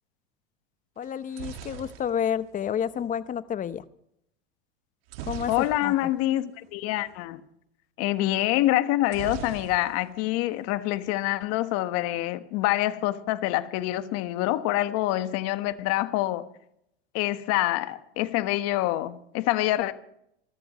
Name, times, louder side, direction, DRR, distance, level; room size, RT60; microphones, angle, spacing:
voice 1, 1.0-3.8 5.3-5.5 5.8-5.9, left 8 dB, 25° left, 0.9 m, -30 dB
sound 1, 1.0-3.1 5.1-6.2 6.5-6.7 6.9-7.2 9.1-10.2 10.5-11.2, right 9 dB, 70° right, 2.0 m, -41 dB
voice 2, 5.5-7.4 8.0-16.5 17.1-19.9, left 15 dB, 50° left, 1.3 m, -26 dB
27.0 x 13.5 x 3.1 m
hypercardioid pair, 105°, 31 cm